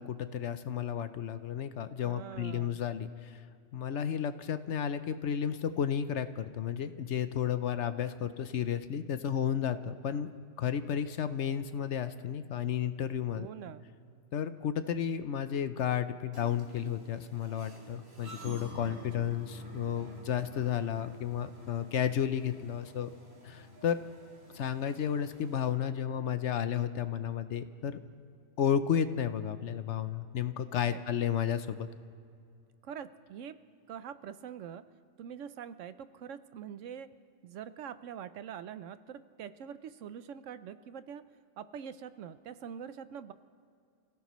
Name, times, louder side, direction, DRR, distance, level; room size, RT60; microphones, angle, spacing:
voice 1, 0.0-3.4 3.7-10.3 10.6-13.5 14.3-23.1 23.4-24.0 24.5-28.0 28.6-31.9, left 8 dB, 65° left, 11 dB, 0.9 m, -32 dB
voice 2, 2.0-2.8 13.3-13.8 18.9-19.3 30.8-31.0 32.8-33.5 33.9-34.8 35.2-37.1 37.4-41.2 41.6-43.3, right 8 dB, 70° right, 13 dB, 0.9 m, -44 dB
sound 1, 16.3-25.7, left 1 dB, 90° right, 2.8 m, -50 dB
28.5 x 16.5 x 3.1 m, 2.3 s
omnidirectional pair, 1.4 m